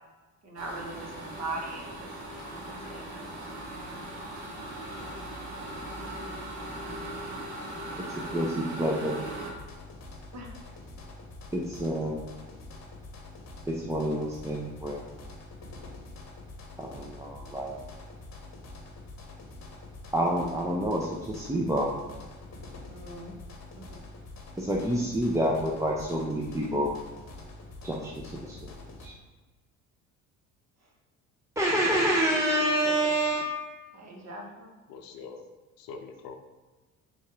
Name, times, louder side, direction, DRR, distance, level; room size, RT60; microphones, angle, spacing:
voice 1, 0.4-2.1 2.7-3.3 10.3-10.5 22.9-23.3 23.8-24.0 32.8-33.1 33.9-34.7, right 2 dB, 40° right, 0 dB, 1.2 m, -40 dB
sound 1, 0.6-9.5, right 1 dB, 65° right, 1.4 m, -39 dB
voice 2, 8.1-9.2 11.5-12.3 13.7-15.2 16.8-17.8 20.1-21.9 24.6-26.9 27.8-28.1 28.4-29.1 31.6-33.7, right 1 dB, 10° right, -3 dB, 0.5 m, -28 dB
sound 2, 9.5-29.1, left 2 dB, 40° left, 1.0 m, -46 dB
voice 3, 34.9-35.5 35.8-36.4, left 5 dB, 60° left, 6 dB, 0.6 m, -43 dB
4.1 x 3.4 x 3.7 m, 1.2 s
hypercardioid pair, 60°, 40 cm